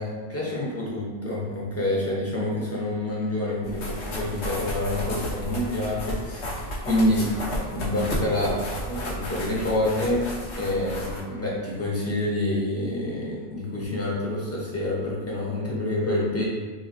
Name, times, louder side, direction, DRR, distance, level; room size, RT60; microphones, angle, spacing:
voice 1, 0.0-6.6 6.9-7.3 7.7-10.2 10.6-16.4, left 1 dB, 15° left, -6 dB, 0.7 m, -27 dB
sound 1, 3.6-11.2, left 1 dB, 80° left, 1.1 m, -32 dB
3.9 x 2.8 x 2.5 m, 1.5 s
omnidirectional pair, 1.1 m